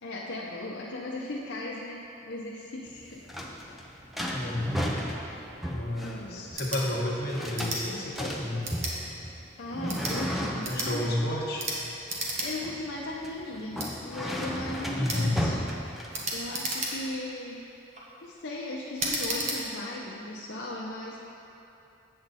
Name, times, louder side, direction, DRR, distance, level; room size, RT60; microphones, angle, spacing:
voice 1, 0.0-3.5 6.0-6.5 9.6-11.2 12.4-15.6 16.3-17.7 18.2-21.2, left 2 dB, 70° left, -4 dB, 0.6 m, -37 dB
sound 1, 2.9-16.5, equal, ahead, 0.5 m, -35 dB
voice 2, 4.3-4.7 5.7-8.7 10.7-11.6 14.9-15.4, left 1 dB, 50° left, -4 dB, 1.2 m, -31 dB
sound 2, 6.5-6.8 7.5-7.8 8.6-9.0 9.8-10.2 10.6-10.9 11.6-11.8 12.1-12.5 12.8-12.9 13.8-13.9 15.1-15.2 16.1-17.2 17.7-18.0 19.0-19.6, right 2 dB, 35° right, 1.1 m, -33 dB
7.9 x 7.6 x 4.1 m, 3.0 s
head